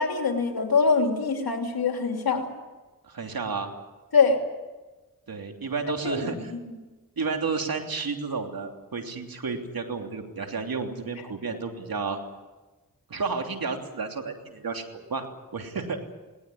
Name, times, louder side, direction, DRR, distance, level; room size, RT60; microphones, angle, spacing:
voice 1, 0.0-2.5 4.1-4.4 6.0-6.7, left 5 dB, 90° left, 3 dB, 3.0 m, -24 dB
voice 2, 3.0-3.7 5.3-6.5 7.2-12.2 13.1-14.8 15.1-15.3 15.5-16.0, right 4 dB, 75° right, 3 dB, 3.2 m, -31 dB
20.0 x 19.0 x 9.9 m, 1.2 s
cardioid pair, 45°, 35 cm